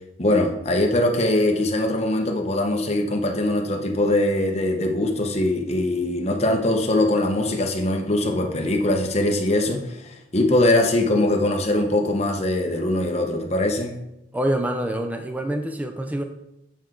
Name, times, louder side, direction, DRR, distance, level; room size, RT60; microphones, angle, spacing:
voice 1, 0.2-13.9, left 1 dB, 35° left, 3 dB, 0.9 m, -22 dB
voice 2, 14.3-16.2, right 1 dB, 10° right, 5 dB, 0.5 m, -26 dB
8.3 x 4.5 x 3.8 m, 0.85 s
head